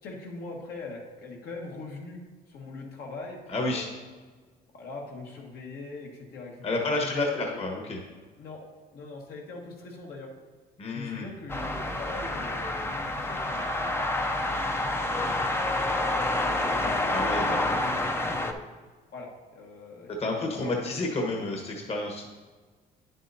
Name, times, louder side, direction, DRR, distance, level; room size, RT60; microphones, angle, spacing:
voice 1, 0.0-2.2 2.5-3.9 4.7-7.6 8.4-8.6 8.9-10.3 10.8-17.3 17.7-18.6 19.1-21.1, left 3 dB, 70° left, -1 dB, 1.6 m, -42 dB
voice 2, 3.5-3.8 6.6-8.0 10.8-11.3 17.1-17.8 20.2-22.3, left 2 dB, 35° left, 1 dB, 1.3 m, -30 dB
sound 1, 11.5-18.5, left 2 dB, 15° left, 0.5 m, -28 dB
9.6 x 7.6 x 2.7 m, 1.4 s
cardioid pair, 110°, 17 cm